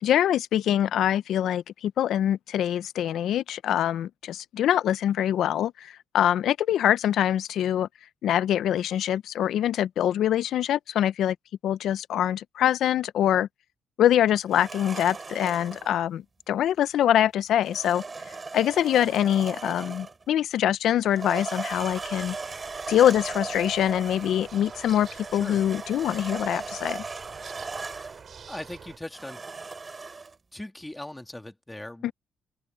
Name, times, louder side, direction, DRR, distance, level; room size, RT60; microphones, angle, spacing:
voice 1, 0.0-7.9 8.2-11.4 11.6-13.5 14.0-18.0 18.5-22.4 22.9-27.0 32.0-32.1, left 11 dB, 75° left, 0.7 m, -24 dB
sound 1, 14.5-15.9 17.6-20.2 21.0-28.2 29.1-30.4, right 4 dB, 30° right, 4.3 m, -37 dB
sound 2, 21.7-29.0, right 6 dB, 50° right, 7.6 m, -47 dB
voice 2, 28.5-29.4 30.5-32.1, left 1 dB, 10° left, 2.8 m, -39 dB
open air
cardioid pair, 90°, 0 cm